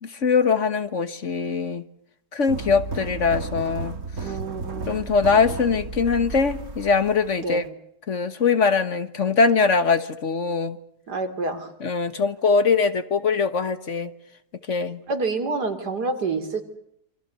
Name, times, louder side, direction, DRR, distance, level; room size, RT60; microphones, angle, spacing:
voice 1, 0.0-1.8 2.3-4.3 4.9-7.6 8.1-10.8 11.8-14.1 14.7-15.0, left 5 dB, 50° left, 12 dB, 1.6 m, -22 dB
sound 1, 2.5-7.7, right 3 dB, 60° right, 2.3 m, -33 dB
voice 2, 4.2-4.9 7.4-7.6 11.1-11.7 15.1-16.6, right 3 dB, 90° right, 6 dB, 3.8 m, -27 dB
27.5 x 25.5 x 6.8 m, 0.73 s
omnidirectional pair, 1.7 m